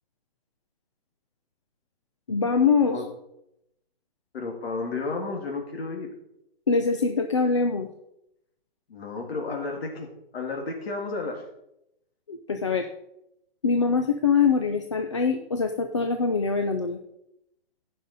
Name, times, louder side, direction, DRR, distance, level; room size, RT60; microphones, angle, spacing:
voice 1, 2.3-3.0 6.7-7.9 12.3-12.9 13.6-17.0, left 5 dB, 30° left, 6 dB, 0.4 m, -23 dB
voice 2, 4.3-6.1 8.9-10.1 10.3-11.5, left 3 dB, 85° left, 2 dB, 2.2 m, -32 dB
15.0 x 5.5 x 4.1 m, 0.81 s
hypercardioid pair, 180°, 30 cm